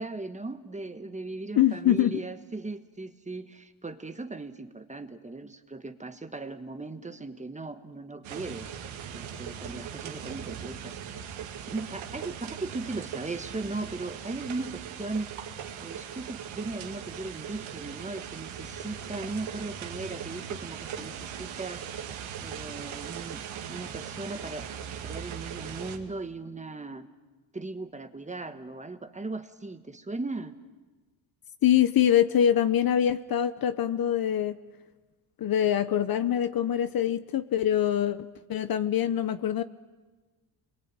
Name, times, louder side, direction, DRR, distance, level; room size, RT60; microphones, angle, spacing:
voice 1, 0.0-8.7 9.1-11.0 11.7-15.3 15.8-21.8 22.4-23.4 23.7-24.7 25.0-27.1 27.5-30.5, right 3 dB, 15° right, 9 dB, 1.4 m, -38 dB
voice 2, 1.6-2.2 31.6-34.6 35.4-38.2 38.5-39.6, left 10 dB, 45° left, 12 dB, 1.0 m, -24 dB
sound 1, 8.2-26.0, right 8 dB, 75° right, 2.4 m, -39 dB
28.0 x 22.5 x 8.9 m, 1.3 s
cardioid pair, 120°, 48 cm